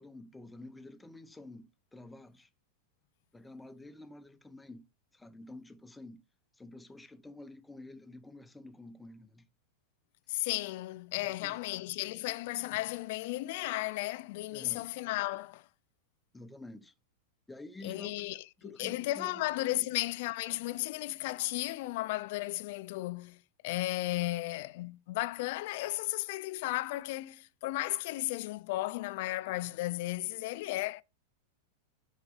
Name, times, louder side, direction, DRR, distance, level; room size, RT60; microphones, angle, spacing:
voice 1, 0.0-2.5 3.3-4.8 5.1-6.2 6.5-9.5 11.2-11.6 14.5-14.9 16.3-16.9 17.5-18.3 18.6-19.5 19.8-19.9, left 2 dB, 5° left, 0.6 m, -49 dB
voice 2, 10.3-15.6 17.8-18.4 18.8-23.4 23.6-31.0, left 18 dB, 55° left, 0.5 m, -34 dB
12.0 x 4.7 x 3.3 m
supercardioid pair, 150°, 0 cm